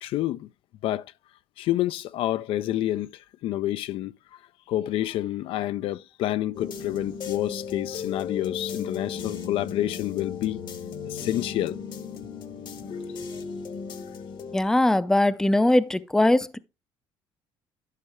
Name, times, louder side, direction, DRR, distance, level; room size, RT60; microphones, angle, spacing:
voice 1, 0.0-0.5 0.8-1.1 1.6-3.1 3.4-4.1 4.7-10.6 11.1-11.8, left 13 dB, 65° left, 0.4 m, -28 dB
sound 1, 6.5-14.6, left 6 dB, 50° left, 1.0 m, -35 dB
voice 2, 14.5-16.6, left 1 dB, 5° left, 0.5 m, -21 dB
11.5 x 5.4 x 3.5 m
cardioid pair, 115°, 10 cm